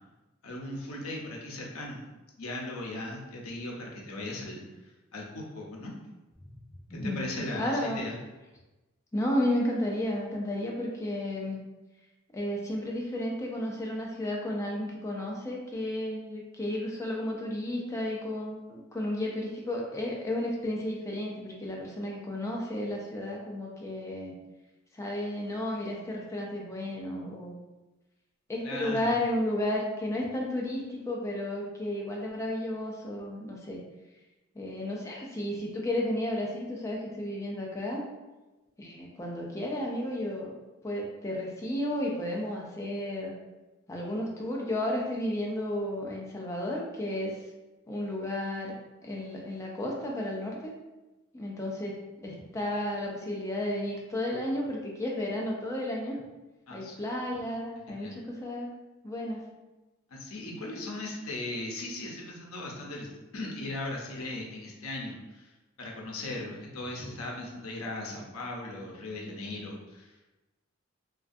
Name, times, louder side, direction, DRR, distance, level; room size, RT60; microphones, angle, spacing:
voice 1, 0.4-2.0 2.4-5.9 7.0-8.2 28.6-29.2 56.7-57.0 57.9-58.1 60.1-65.5 65.8-70.2, left 2 dB, 90° left, -1 dB, 0.6 m, -38 dB
voice 2, 6.9-7.3 7.5-8.0 9.1-11.6 12.3-24.3 24.9-27.6 28.5-33.8 34.5-38.0 38.8-40.5 40.8-43.3 43.9-47.4 47.9-48.7 49.0-50.7 51.3-52.0 52.2-56.2 56.7-58.7 59.0-59.4, left 1 dB, 15° left, -2 dB, 0.3 m, -33 dB
2.4 x 2.2 x 2.5 m, 1.1 s
head